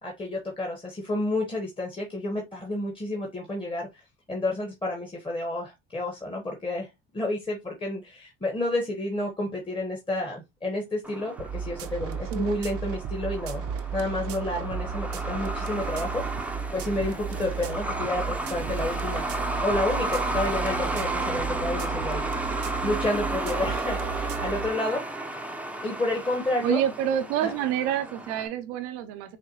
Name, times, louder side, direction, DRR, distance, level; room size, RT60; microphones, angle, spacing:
voice 1, 0.0-4.0 4.3-6.9 7.1-13.6 13.9-16.3 16.7-19.3 19.6-25.0 25.8-26.8 27.4-27.5, left 1 dB, 15° left, 1.3 m, -30 dB
Truck, 11.0-28.5, right 2 dB, 5° right, 0.8 m, -33 dB
sound 1, 11.4-24.7, right 6 dB, 50° right, 0.6 m, -34 dB
voice 2, 26.6-29.4, right 11 dB, 85° right, 0.8 m, -27 dB
5.8 x 2.2 x 3.0 m
supercardioid pair, 75°, 32 cm